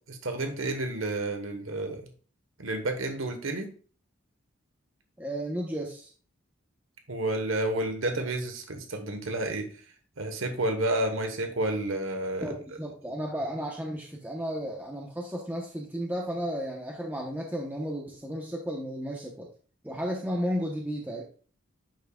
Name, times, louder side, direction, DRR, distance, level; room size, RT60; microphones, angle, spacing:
voice 1, 0.1-2.1 2.6-3.7 7.1-9.7 10.2-12.5, right 2 dB, 80° right, 5 dB, 1.2 m, -30 dB
voice 2, 5.2-6.1 12.4-19.5 19.8-21.2, equal, 10° right, -1 dB, 0.9 m, -33 dB
10.5 x 5.9 x 2.4 m, 0.40 s
head